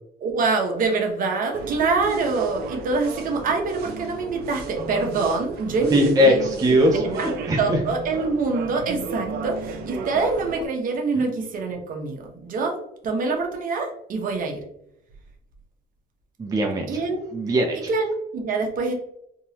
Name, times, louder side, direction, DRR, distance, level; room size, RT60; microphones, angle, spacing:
voice 1, 0.2-6.4 6.9-7.0 7.6-12.8 13.0-14.6 16.9-17.2 17.9-18.9, right 4 dB, 55° right, 2 dB, 0.9 m, -25 dB
sound 1, 1.5-10.6, right 4 dB, 70° right, 0.5 m, -34 dB
voice 2, 5.9-7.8 16.4-17.0 17.3-17.9, equal, 20° right, 2 dB, 0.5 m, -20 dB
3.6 x 2.8 x 2.8 m, 0.75 s
cardioid pair, 110°, 17 cm